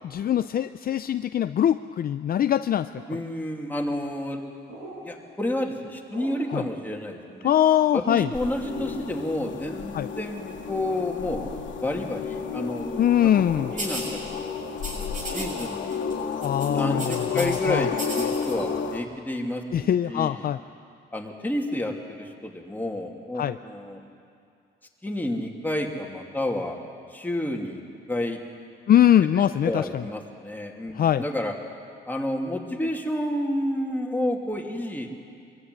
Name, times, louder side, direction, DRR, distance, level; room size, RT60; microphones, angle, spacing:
voice 1, 0.0-2.9 6.5-6.6 7.4-8.3 9.9-10.1 13.0-13.7 16.4-17.9 19.7-20.6 23.4-23.6 28.9-30.0 30.9-31.2, left 10 dB, 50° left, 11 dB, 0.5 m, -22 dB
sound 1, 2.9-3.3 4.7-5.0 6.1-6.4 7.4-7.8 8.6-8.8 9.4-9.6 10.7-10.9 11.3-11.6 12.7-12.9 13.5-13.8 15.3-15.6, right 1 dB, 85° right, 7.7 m, -40 dB
voice 2, 3.1-4.4 5.0-7.5 7.9-11.4 11.8-13.3 13.7-14.5 14.9-16.0 16.7-20.5 21.1-24.0 25.0-26.8 27.1-27.8 28.1-28.4 29.3-31.5 32.1-35.1, left 1 dB, 10° left, 1 dB, 2.7 m, -30 dB
sound 2, 8.3-19.0, left 6 dB, 70° left, 2.2 m, -32 dB
sound 3, 13.8-14.1 14.8-15.7 15.9-16.1 16.4-17.6 17.9-18.5, right 1 dB, 40° right, 7.3 m, -35 dB
23.0 x 15.0 x 9.7 m, 2.3 s
cardioid pair, 90°, 20 cm